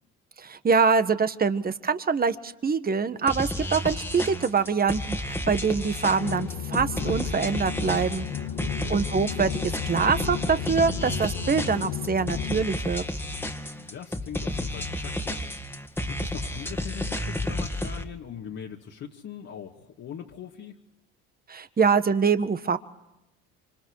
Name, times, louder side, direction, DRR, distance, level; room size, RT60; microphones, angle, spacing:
voice 1, 0.4-8.3 8.9-9.5 9.9-13.0 21.5-22.8, right 5 dB, 30° right, 11 dB, 1.6 m, -24 dB
sound 1, 3.3-18.0, left 1 dB, 5° left, 2.2 m, -32 dB
sound 2, 6.2-12.6, left 10 dB, 75° left, 1.5 m, -34 dB
voice 2, 8.6-9.0 13.7-20.8, left 8 dB, 55° left, -2 dB, 2.4 m, -41 dB
27.5 x 25.5 x 4.9 m, 0.91 s
supercardioid pair, 80°, 32 cm